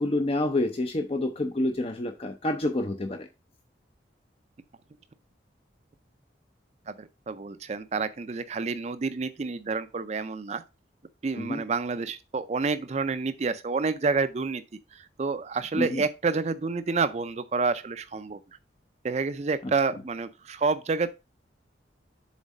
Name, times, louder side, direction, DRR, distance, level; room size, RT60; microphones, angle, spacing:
voice 1, 0.0-3.3 11.3-11.6 15.7-16.0, left 1 dB, 35° left, 0.6 m, -28 dB
voice 2, 6.9-10.6 11.2-14.6 14.9-18.4 19.0-21.1, right 4 dB, 35° right, 0.4 m, -29 dB
7.2 x 4.0 x 5.2 m
head